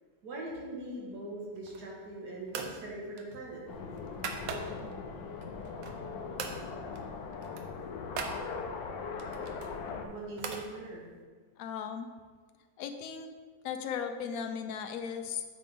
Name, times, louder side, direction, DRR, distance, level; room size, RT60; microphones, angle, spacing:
voice 1, 0.2-3.6 10.0-11.1, right 2 dB, 55° right, -3 dB, 2.0 m, -41 dB
sound 1, 1.6-2.0 2.5-2.8 3.2-4.9 5.4-6.1 6.4-6.6 6.9-7.1 7.3-8.4 9.2-10.7, right 5 dB, 75° right, 1.4 m, -41 dB
sound 2, 3.7-10.1, left 5 dB, 70° left, 1.4 m, -40 dB
voice 2, 11.6-12.1 12.8-13.3 13.6-15.4, left 7 dB, 90° left, 6 dB, 0.7 m, -36 dB
8.4 x 6.3 x 3.6 m, 1.5 s
omnidirectional pair, 2.1 m